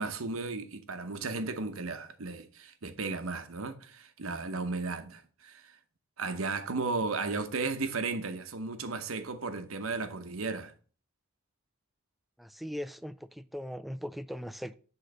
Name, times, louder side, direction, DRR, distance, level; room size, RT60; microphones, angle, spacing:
voice 1, 0.0-5.7 6.2-10.7, right 3 dB, 85° right, 1.0 m, -35 dB
voice 2, 12.4-14.7, equal, ahead, 0.3 m, -39 dB
8.2 x 3.9 x 6.5 m
head